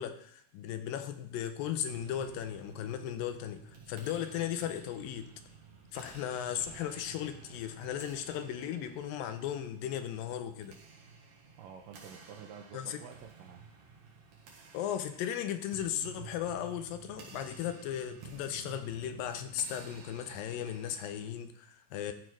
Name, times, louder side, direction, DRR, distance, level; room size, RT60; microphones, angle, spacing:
voice 1, 0.0-3.6 3.9-5.3 5.9-10.7 12.7-13.0 14.7-22.1, left 10 dB, 85° left, 8 dB, 2.4 m, -36 dB
sound 1, 1.8-21.3, right 5 dB, 60° right, 2.7 m, -52 dB
voice 2, 11.6-13.7, right 7 dB, 80° right, 2 dB, 2.4 m, -49 dB
13.0 x 4.5 x 4.7 m, 0.63 s
omnidirectional pair, 4.1 m